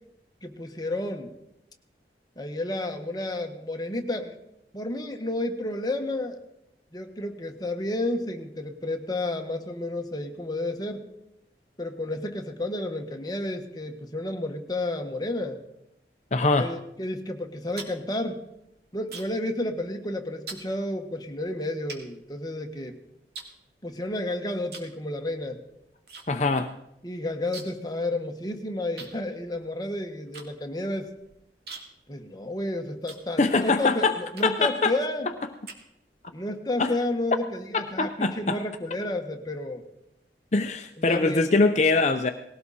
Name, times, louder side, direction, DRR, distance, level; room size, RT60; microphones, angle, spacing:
voice 1, 0.4-1.3 2.4-4.3 4.7-6.4 6.9-11.1 11.8-15.6 16.6-18.4 18.9-23.0 23.8-25.6 27.0-31.1 32.1-35.3 36.3-39.9 41.0-41.4, left 1 dB, 20° left, 4 dB, 1.5 m, -31 dB
voice 2, 16.3-16.7 26.3-26.7 33.4-34.1 34.4-34.9 36.8-36.9 38.0-38.6 40.5-42.3, left 3 dB, 40° left, 7 dB, 0.7 m, -22 dB
sound 1, 17.4-19.5 19.8-20.1 20.5-20.7 21.3-21.4 21.9-22.9 23.3-24.2 24.7-25.0 25.3-26.3 26.5-26.6 26.9-27.9 28.2-28.3 29.0-33.7 34.3-34.7 35.2-36.3, right 4 dB, 65° right, 2.6 m, -44 dB
19.5 x 17.0 x 4.2 m, 0.84 s
head